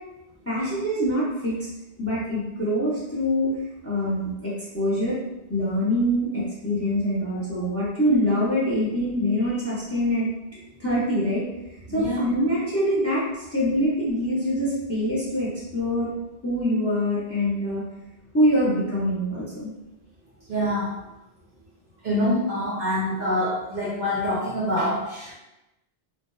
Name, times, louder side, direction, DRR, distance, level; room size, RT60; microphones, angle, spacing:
voice 1, 0.5-1.7 2.0-3.5 3.8-5.2 5.5-10.3 10.8-11.4 11.9-16.1 16.4-17.8 18.3-19.7, equal, 15° left, -8 dB, 0.5 m, -24 dB
voice 2, 11.9-12.2 20.5-20.9 22.0-25.3, left 1 dB, 55° right, -6 dB, 0.7 m, -25 dB
2.7 x 2.1 x 2.2 m, 0.97 s
omnidirectional pair, 1.1 m